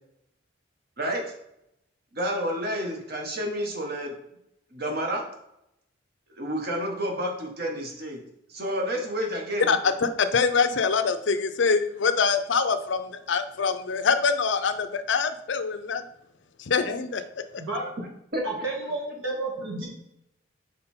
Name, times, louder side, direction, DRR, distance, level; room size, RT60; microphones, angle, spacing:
voice 1, 2.1-4.2 4.7-5.2 6.4-8.2 8.5-9.8 17.8-17.9 18.3-18.4, equal, 50° right, 1 dB, 1.3 m, -30 dB
voice 2, 9.7-16.0 16.7-17.2, left 5 dB, 60° left, 10 dB, 0.5 m, -24 dB
voice 3, 18.4-19.9, right 2 dB, 75° right, -3 dB, 2.3 m, -31 dB
5.4 x 4.7 x 4.3 m, 0.80 s
head